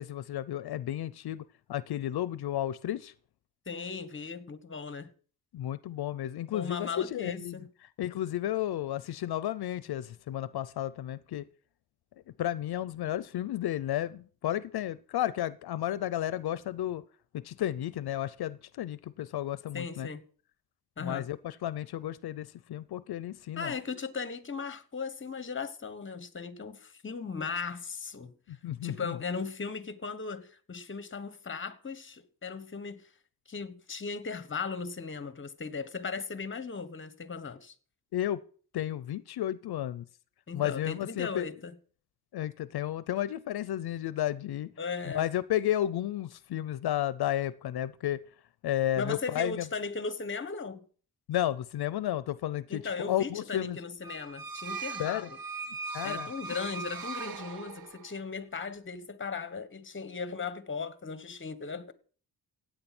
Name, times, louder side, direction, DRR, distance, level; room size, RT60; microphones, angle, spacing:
voice 1, 0.0-1.4 1.7-3.1 5.5-7.6 8.0-11.5 12.4-17.0 17.3-20.1 21.0-23.7 28.5-29.2 38.1-38.4 38.7-40.0 40.5-41.5 42.3-44.7 45.0-48.2 48.6-49.7 51.3-53.8 55.0-55.3 55.9-56.3, left 12 dB, 85° left, 0.6 m, -32 dB
voice 2, 3.7-5.1 6.5-7.7 19.7-20.2 21.0-21.3 23.5-28.6 28.8-33.0 33.5-37.7 40.5-41.7 44.8-45.3 49.0-50.8 52.7-55.4 56.0-61.9, left 5 dB, 30° left, 1.4 m, -37 dB
sound 1, 54.0-58.2, right 4 dB, 70° right, 1.3 m, -39 dB
16.0 x 9.2 x 6.0 m
wide cardioid pair, 135°, 37 cm